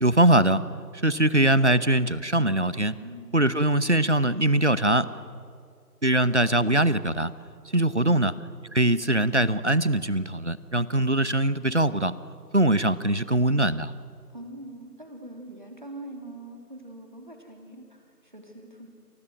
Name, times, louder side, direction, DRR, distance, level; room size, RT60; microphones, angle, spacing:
voice 1, 0.0-0.6 1.0-3.0 3.3-5.1 6.0-7.3 7.7-8.3 8.7-12.1 12.5-13.9, right 1 dB, 45° right, 16 dB, 1.0 m, -22 dB
voice 2, 3.0-3.3 8.0-8.2 14.3-18.9, right 1 dB, 30° right, 3 dB, 3.3 m, -43 dB
28.5 x 28.5 x 6.4 m, 2.3 s
figure-of-eight pair, 175°, 47 cm